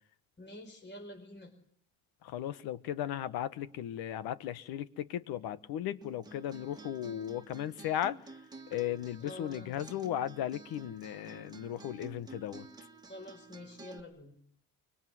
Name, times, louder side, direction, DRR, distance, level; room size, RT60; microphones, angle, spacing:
voice 1, 0.4-1.5 9.2-9.7 13.1-14.4, left 1 dB, 30° left, 4.9 m, -47 dB
voice 2, 2.2-8.2 8.7-12.7, left 11 dB, 70° left, 1.5 m, -36 dB
Acoustic guitar, 6.0-14.0, right 3 dB, 10° right, 2.1 m, -52 dB
25.0 x 23.0 x 9.5 m
cardioid pair, 135°, 38 cm